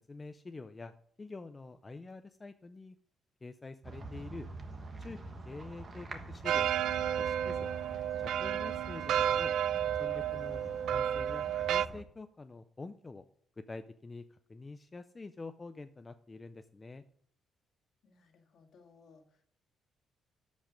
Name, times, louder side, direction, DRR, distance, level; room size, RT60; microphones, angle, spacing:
voice 1, 0.1-3.0 3.4-4.5 5.0-5.2 5.5-6.7 7.2-7.7 8.2-9.5 10.0-10.6 10.9-13.2 13.6-17.0, left 3 dB, 20° left, 9 dB, 0.4 m, -46 dB
sound 1, 3.8-12.0, right 3 dB, 30° right, 1.3 m, -45 dB
sound 2, 6.5-11.9, right 10 dB, 70° right, 0.3 m, -32 dB
voice 2, 18.0-19.4, left 4 dB, 55° left, 3 dB, 1.9 m, -61 dB
13.0 x 5.3 x 5.1 m, 0.62 s
cardioid pair, 145°, 0 cm